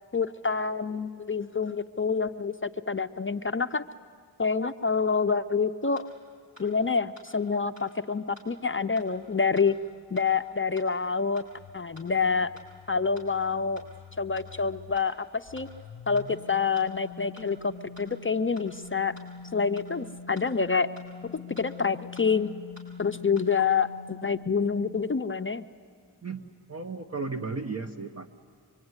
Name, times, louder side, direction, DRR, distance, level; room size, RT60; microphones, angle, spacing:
voice 1, 0.1-3.8 4.4-6.1 6.6-9.8 10.1-11.4 11.7-12.5 12.9-13.8 14.2-15.7 16.1-17.7 18.0-19.1 19.5-20.9 21.2-22.5 23.0-25.6, left 5 dB, 30° left, 9 dB, 0.7 m, -27 dB
sound 1, 6.0-6.1 6.6-6.7 7.2-7.3 7.8-7.9 8.4-8.5 9.0-9.1 9.6-9.7 10.2-10.3 10.8-10.9 11.4-11.5 12.0-12.1 12.6-12.7 13.2-13.3 13.8-13.9 14.4-14.5 15.0-15.1 15.6-15.7 16.2-16.3 16.8-16.9 17.4-17.5 18.0-18.1 18.6-18.7 19.2-19.3 19.8-19.9 20.4-20.5 21.0-21.1 21.6-21.7 22.2-22.3 22.8-22.9 23.4-23.5, left 2 dB, 90° right, 6.5 m, -51 dB
sound 2, 11.5-15.0 15.5-25.0, left 5 dB, 80° left, 0.8 m, -45 dB
voice 2, 26.2-28.3, right 4 dB, 35° right, 4 dB, 1.1 m, -35 dB
24.5 x 24.5 x 9.7 m, 2.1 s
cardioid pair, 65°, 42 cm